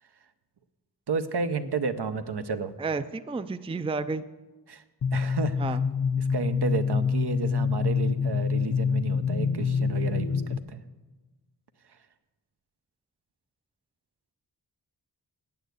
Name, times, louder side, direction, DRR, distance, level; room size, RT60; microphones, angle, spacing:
voice 1, 1.1-2.7 4.7-4.8 5.1-5.8 6.2-10.8, right 5 dB, 70° right, 10 dB, 0.8 m, -31 dB
voice 2, 2.8-4.2 5.6-5.8, right 4 dB, 15° right, 12 dB, 0.4 m, -31 dB
sound 1, 5.0-10.6, left 6 dB, 45° left, 0.6 m, -26 dB
8.8 x 8.2 x 8.0 m, 1.2 s
wide cardioid pair, 55°, 42 cm